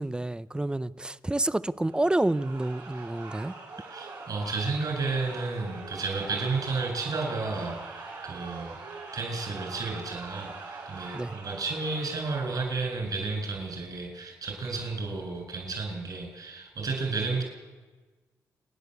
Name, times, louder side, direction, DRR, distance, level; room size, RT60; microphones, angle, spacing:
voice 1, 0.0-3.5 11.1-11.3, right 1 dB, 10° right, 0.6 m, -28 dB
sound 1, 1.8-12.8, right 3 dB, 90° right, 5.1 m, -43 dB
voice 2, 3.9-8.7 9.1-17.4, right 3 dB, 60° right, 8.0 m, -32 dB
29.5 x 10.5 x 8.3 m
cardioid pair, 80°, 7 cm